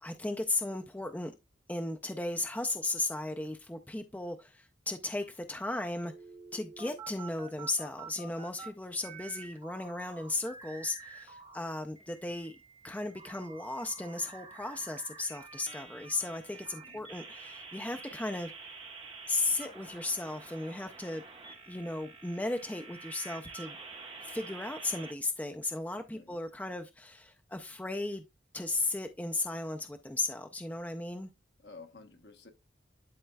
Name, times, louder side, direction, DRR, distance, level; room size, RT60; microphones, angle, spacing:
voice 1, 0.0-1.3 1.7-6.1 6.5-12.6 12.8-18.5 19.3-21.2 21.7-23.8 24.2-28.2 28.5-31.3, left 2 dB, 10° left, 0.4 m, -35 dB
sound 1, 6.0-8.7 9.0-11.6 12.0-25.1, right 4 dB, 25° right, 0.9 m, -48 dB
voice 2, 31.6-32.5, left 3 dB, 55° left, 1.0 m, -52 dB
11.0 x 4.2 x 2.2 m
head